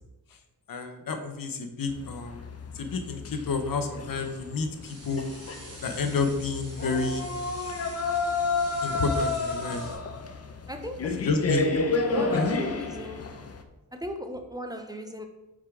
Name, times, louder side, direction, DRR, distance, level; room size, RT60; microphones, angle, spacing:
voice 1, 0.7-2.4 2.8-5.2 5.8-7.3 8.8-9.8 11.2-11.6 12.3-12.6, left 4 dB, 70° left, 6 dB, 1.0 m, -29 dB
sound 1, 1.9-13.6, left 3 dB, 45° left, 0.8 m, -31 dB
sound 2, 4.8-9.9, right 2 dB, 45° right, 2.4 m, -47 dB
voice 2, 10.7-11.0 12.1-13.2 13.9-15.2, equal, 10° right, 5 dB, 0.8 m, -37 dB
5.6 x 4.9 x 4.7 m, 1.0 s
cardioid pair, 75°, 36 cm